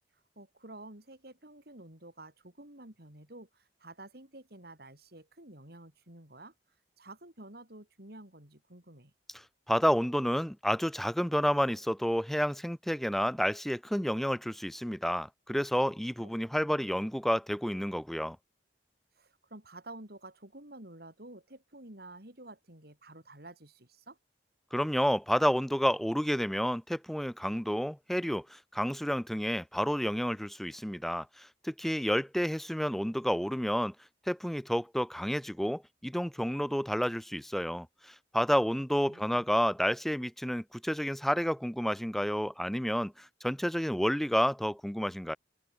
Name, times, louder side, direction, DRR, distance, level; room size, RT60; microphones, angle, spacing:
voice 1, 0.4-6.5 7.0-9.1 19.2-24.2 38.8-39.5, right 2 dB, 60° right, 5.8 m, -50 dB
voice 2, 9.7-18.4 24.7-33.9 34.3-45.4, equal, ahead, 0.6 m, -30 dB
head